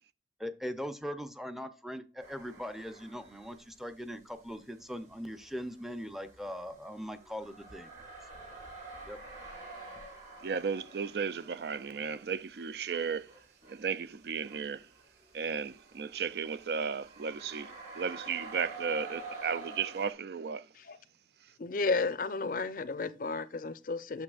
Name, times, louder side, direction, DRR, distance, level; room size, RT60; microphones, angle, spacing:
voice 1, 0.4-7.9 9.1-9.2, equal, ahead, 0.6 m, -40 dB
sound 1, 2.2-3.7 4.1-20.1, right 3 dB, 45° right, 3.5 m, -49 dB
voice 2, 10.4-13.3 13.7-14.8 15.3-20.6, right 6 dB, 60° right, 0.4 m, -34 dB
voice 3, 21.6-24.2, left 3 dB, 50° left, 0.5 m, -33 dB
8.6 x 6.7 x 2.4 m
head